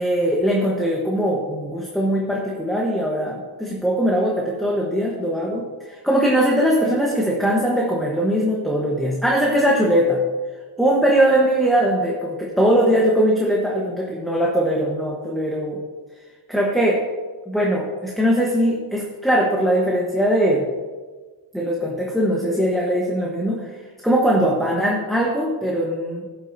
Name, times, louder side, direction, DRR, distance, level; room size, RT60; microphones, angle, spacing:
voice 1, 0.0-10.2 10.8-15.8 16.5-17.0 17.5-20.7 21.5-23.7 24.0-26.3, equal, ahead, -3 dB, 1.2 m, -20 dB
15.0 x 7.8 x 2.7 m, 1.4 s
cardioid pair, 145°, 45 cm